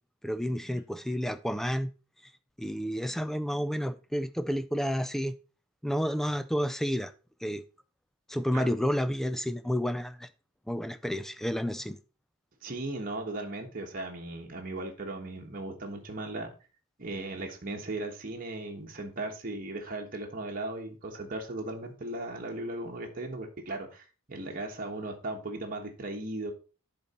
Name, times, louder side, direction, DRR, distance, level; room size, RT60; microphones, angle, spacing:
voice 1, 0.2-1.9 2.6-5.3 5.8-7.1 7.4-7.6 8.3-10.3 10.7-12.0, equal, ahead, 0.4 m, -30 dB
voice 2, 12.6-16.5 17.0-26.5, right 2 dB, 40° right, 1.3 m, -37 dB
10.5 x 4.0 x 4.2 m
head